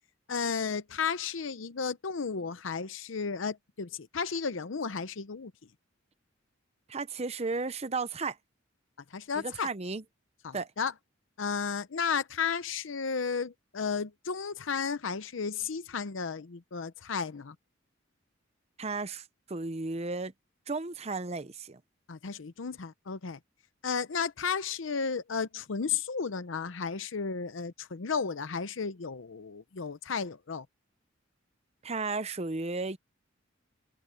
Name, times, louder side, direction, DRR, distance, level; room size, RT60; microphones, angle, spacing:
voice 1, 0.3-5.5 9.1-9.7 10.4-10.9 11.4-17.5 22.1-23.4 23.8-30.7, left 5 dB, 75° left, 0.7 m, -33 dB
voice 2, 6.9-8.4 9.4-10.0 10.5-10.7 18.8-20.3 20.7-21.8 31.8-33.0, right 3 dB, 35° right, 0.7 m, -34 dB
open air
head